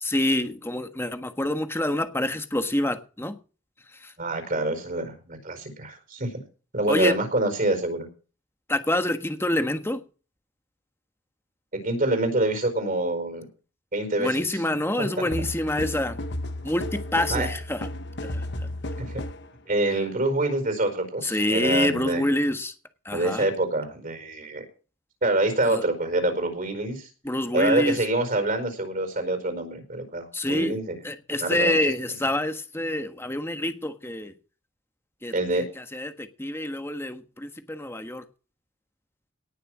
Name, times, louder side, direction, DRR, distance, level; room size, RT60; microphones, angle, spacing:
voice 1, 0.0-3.3 6.9-7.1 8.7-10.0 14.2-16.2 16.6-17.8 18.3-18.4 21.2-22.7 23.1-23.4 25.7-25.8 27.2-28.0 30.3-30.8 31.0-34.3 35.2-35.6 35.9-38.2, left 1 dB, 10° left, 1.4 m, -26 dB
voice 2, 4.2-6.3 6.7-8.1 11.7-13.5 13.9-14.6 15.0-15.3 17.3-17.5 19.0-19.1 19.7-22.3 23.1-24.6 25.2-27.1 27.5-31.0 31.4-31.9 35.3-35.6, right 2 dB, 45° right, 4.9 m, -26 dB
sound 1, 15.3-19.5, left 1 dB, 60° left, 1.2 m, -33 dB
18.5 x 6.8 x 6.2 m
head